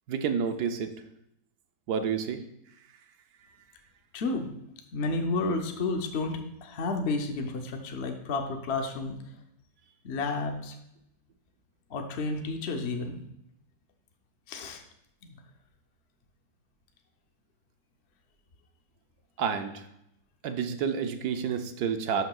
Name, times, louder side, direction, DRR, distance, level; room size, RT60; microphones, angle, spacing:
voice 1, 0.1-0.9 1.9-2.4 19.4-19.9 20.4-22.2, right 7 dB, 65° right, 7 dB, 1.0 m, -29 dB
voice 2, 4.1-4.5 4.9-9.2 10.0-10.8 11.9-13.2 14.5-14.8 15.3-15.4, left 3 dB, 55° left, 4 dB, 0.7 m, -31 dB
11.5 x 5.8 x 2.3 m, 0.78 s
omnidirectional pair, 2.0 m